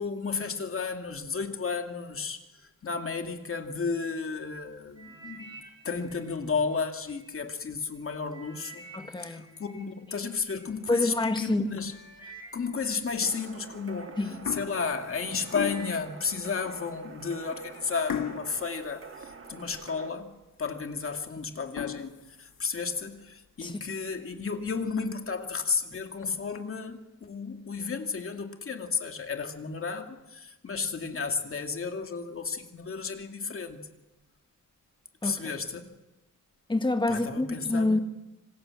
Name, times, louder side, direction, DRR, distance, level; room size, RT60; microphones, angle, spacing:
voice 1, 0.0-8.8 9.2-12.0 12.5-14.1 14.5-33.9 35.2-35.9 37.1-38.0, left 5 dB, 40° left, 2.4 m, -33 dB
sound 1, 5.0-7.3 7.8-10.7 11.4-11.5 11.8-14.2 14.7-15.0 15.3-16.8 17.1-17.6 18.2-18.3, right 3 dB, 15° right, 5.2 m, -51 dB
voice 2, 8.9-9.5 10.9-11.7 14.2-14.5 23.6-23.8 35.2-35.5 36.7-38.0, left 2 dB, 15° left, 1.7 m, -27 dB
sound 2, 11.6-12.2 12.7-12.9 13.7-14.0 14.2-16.1 16.7-16.8 17.2-17.3 18.1-19.8 20.3-20.4 20.8-20.9 21.6-23.2 23.6-23.7 24.1-24.2 24.6-24.7 25.0-25.1 26.0-26.6, left 8 dB, 75° left, 2.1 m, -38 dB
sound 3, 13.2-20.1, right 5 dB, 40° right, 1.7 m, -47 dB
26.5 x 26.0 x 7.7 m
wide cardioid pair, 175°, 33 cm